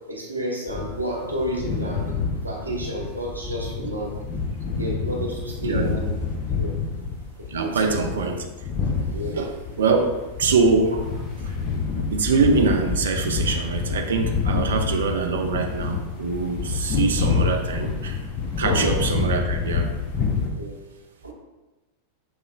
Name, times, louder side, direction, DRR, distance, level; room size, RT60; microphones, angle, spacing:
voice 1, 0.1-2.1 2.4-4.1 4.7-6.1 6.6-6.7 7.5-8.0 9.1-9.4 18.6-18.9 20.6-20.7 21.2-21.3, equal, 85° right, -3 dB, 1.0 m, -30 dB
sound 1, 0.7-20.5, left 5 dB, 35° left, 0.7 m, -27 dB
voice 2, 7.5-8.4 9.3-10.1 10.4-10.9 11.4-11.5 12.1-18.2 18.6-19.9, right 4 dB, 65° right, 4 dB, 0.5 m, -23 dB
6.4 x 2.9 x 2.4 m, 1.1 s
figure-of-eight pair, 90°, 0 cm